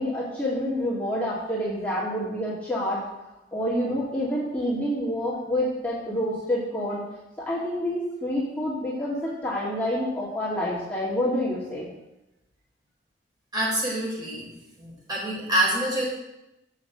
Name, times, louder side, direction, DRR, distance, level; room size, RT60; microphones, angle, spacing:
voice 1, 0.0-3.0 3.5-7.0 7.4-11.9, left 1 dB, 5° left, -9 dB, 2.0 m, -28 dB
voice 2, 13.5-14.5 14.8-16.0, right 1 dB, 25° right, -5 dB, 3.9 m, -26 dB
7.4 x 5.8 x 7.7 m, 0.92 s
head